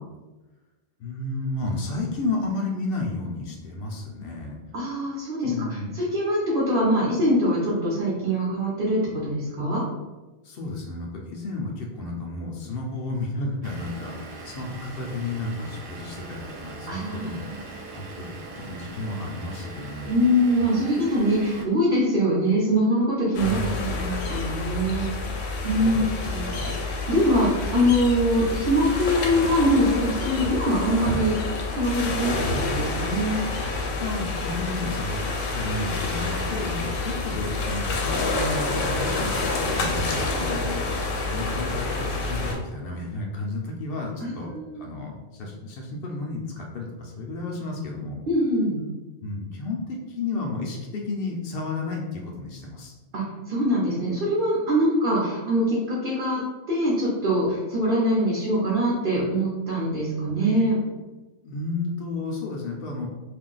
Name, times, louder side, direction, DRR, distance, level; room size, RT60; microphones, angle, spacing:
voice 1, 1.0-4.6 5.4-5.9 10.4-17.4 17.9-20.2 20.6-20.9 23.4-23.8 25.8-26.0 26.5-26.7 34.0-35.2 35.5-48.2 49.2-52.9 61.4-63.1, left 2 dB, 60° left, 0 dB, 0.7 m, -32 dB
voice 2, 4.7-9.8 16.9-17.6 20.0-25.2 25.6-26.5 27.1-31.4 31.7-32.4 32.7-33.4 44.2-44.8 48.3-48.8 53.1-56.4 56.7-60.8, equal, 50° right, -6 dB, 0.9 m, -23 dB
Vehicle / Engine, 13.6-21.6, right 3 dB, 80° right, 1.0 m, -41 dB
sound 1, 23.3-42.5, left 3 dB, 85° left, 1.0 m, -28 dB
2.5 x 2.2 x 3.8 m, 1.2 s
omnidirectional pair, 1.3 m